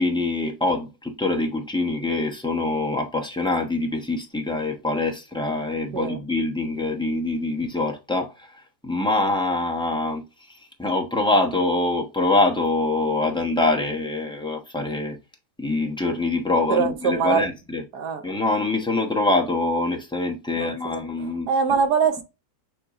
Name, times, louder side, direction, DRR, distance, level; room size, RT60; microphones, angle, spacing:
voice 1, 0.0-8.5 8.8-10.2 10.5-15.2 15.6-17.8 18.2-21.5, left 2 dB, 5° left, 0.5 m, -24 dB
voice 2, 16.7-17.5 17.9-18.2 20.6-21.0 21.5-22.2, right 5 dB, 75° right, 1.5 m, -23 dB
6.7 x 3.0 x 2.5 m
omnidirectional pair, 1.8 m